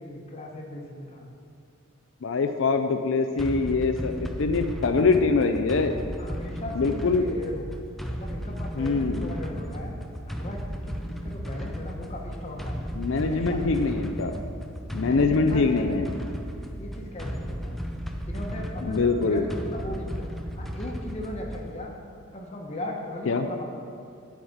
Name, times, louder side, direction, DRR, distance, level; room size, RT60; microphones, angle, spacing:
voice 1, 0.0-1.3 6.2-7.7 8.1-9.9 10.3-12.8 13.2-13.9 15.0-16.3 16.8-17.8 18.2-20.3 20.5-21.9 22.3-23.7, left 1 dB, 30° left, 0 dB, 1.1 m, -38 dB
voice 2, 2.2-5.9 6.8-7.3 8.8-9.3 13.0-14.3 14.9-16.1 18.8-19.4 23.3-23.4, left 4 dB, 65° left, 7 dB, 0.4 m, -24 dB
sound 1, 3.4-21.8, equal, ahead, 0.4 m, -35 dB
9.0 x 4.9 x 7.2 m, 2.5 s
head